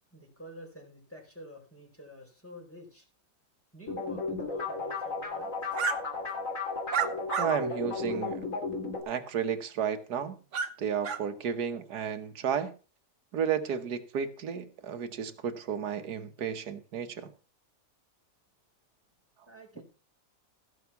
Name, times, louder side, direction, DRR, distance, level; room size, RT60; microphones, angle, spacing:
voice 1, 0.1-3.0 3.7-5.5 19.5-19.8, equal, 5° left, -1 dB, 4.8 m, -48 dB
sound 1, 3.9-9.0, left 4 dB, 50° left, 3.5 m, -34 dB
sound 2, 5.7-6.0 6.9-7.5 8.1-8.2 10.5-10.7 11.0-11.2, right 6 dB, 50° right, 1.3 m, -29 dB
voice 2, 7.4-8.4 9.1-10.4 10.8-12.7 13.3-17.3, right 7 dB, 75° right, 7 dB, 1.8 m, -32 dB
16.0 x 6.3 x 5.9 m, 0.36 s
omnidirectional pair, 1.8 m